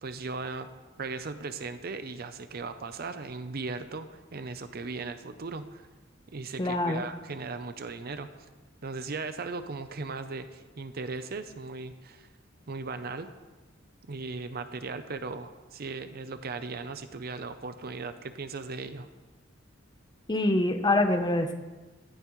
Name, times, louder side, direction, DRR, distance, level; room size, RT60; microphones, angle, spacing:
voice 1, 0.0-0.7 1.0-5.9 6.3-8.3 8.8-12.3 12.7-13.3 14.1-19.1, right 4 dB, 50° right, 10 dB, 0.6 m, -37 dB
voice 2, 6.6-7.0 20.3-21.5, left 2 dB, 20° left, 6 dB, 0.8 m, -25 dB
15.0 x 14.0 x 3.2 m, 1.2 s
head